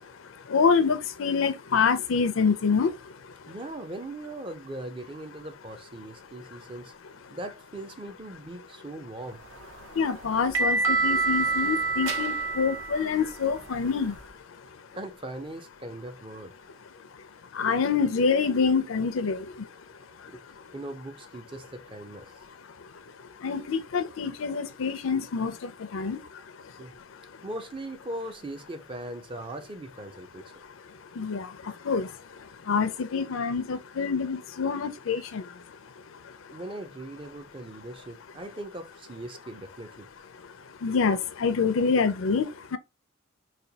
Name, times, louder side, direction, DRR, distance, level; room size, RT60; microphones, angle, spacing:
voice 1, 0.5-2.9 10.0-14.1 17.6-19.4 23.4-26.2 31.2-31.5 31.9-32.1 32.7-35.4 40.8-42.8, left 5 dB, 80° left, 0.5 m, -26 dB
voice 2, 3.5-6.9 7.3-9.4 14.9-16.8 20.3-20.4 20.7-22.3 26.8-26.9 27.4-30.6 36.5-40.1, right 1 dB, 25° right, 0.5 m, -40 dB
sound 1, 9.4-14.3, right 3 dB, 65° right, 0.7 m, -28 dB
4.1 x 2.3 x 2.7 m
head